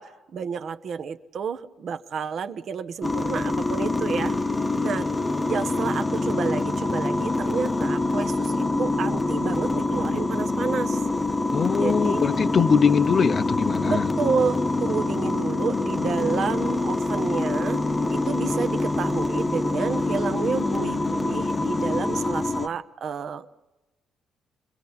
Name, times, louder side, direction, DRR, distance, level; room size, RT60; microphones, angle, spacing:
voice 1, 0.0-4.5 4.8-5.1 5.5-11.0 11.8-12.3 13.8-23.6, right 6 dB, 60° right, 10 dB, 1.0 m, -30 dB
sound 1, 3.0-22.7, left 2 dB, 20° left, 0.9 m, -25 dB
voice 2, 11.5-14.1, left 6 dB, 50° left, 9 dB, 0.7 m, -22 dB
28.0 x 22.5 x 4.2 m, 1.1 s
cardioid pair, 90°, 0 cm